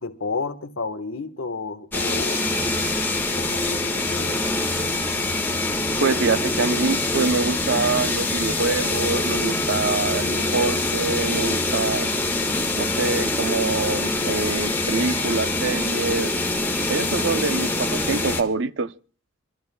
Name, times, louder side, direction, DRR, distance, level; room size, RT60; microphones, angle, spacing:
voice 1, 0.0-2.4 3.4-4.5, left 4 dB, 75° left, 1.3 m, -31 dB
sound 1, 1.9-18.4, left 2 dB, 10° left, 1.5 m, -24 dB
voice 2, 6.0-12.1 12.8-16.3 16.9-18.9, right 4 dB, 60° right, 0.6 m, -25 dB
26.0 x 14.0 x 2.2 m
head